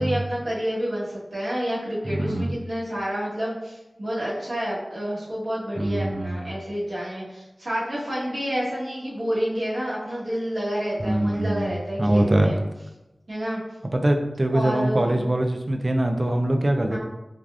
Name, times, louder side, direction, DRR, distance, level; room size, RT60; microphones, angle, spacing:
voice 1, 0.0-12.6 13.3-13.6 14.5-15.3 16.9-17.0, equal, 75° right, -10 dB, 1.2 m, -29 dB
voice 2, 2.1-2.6 5.8-6.4 11.0-11.6 12.0-12.5 13.9-17.0, right 1 dB, 45° right, 4 dB, 0.4 m, -23 dB
3.3 x 2.3 x 2.4 m, 0.98 s
wide cardioid pair, 45°, 0 cm